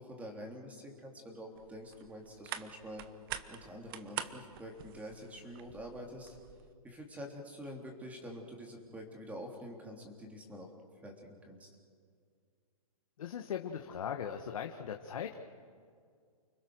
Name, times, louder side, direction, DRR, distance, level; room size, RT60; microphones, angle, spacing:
voice 1, 0.0-3.0 3.5-6.4 6.8-10.7 11.0-11.7, equal, 5° right, 1 dB, 3.4 m, -46 dB
sound 1, 1.6-6.7, right 11 dB, 40° right, 1.2 m, -46 dB
voice 2, 13.2-15.4, left 8 dB, 65° left, 3 dB, 1.7 m, -39 dB
30.0 x 21.5 x 6.4 m, 2.1 s
hypercardioid pair, 150°, 19 cm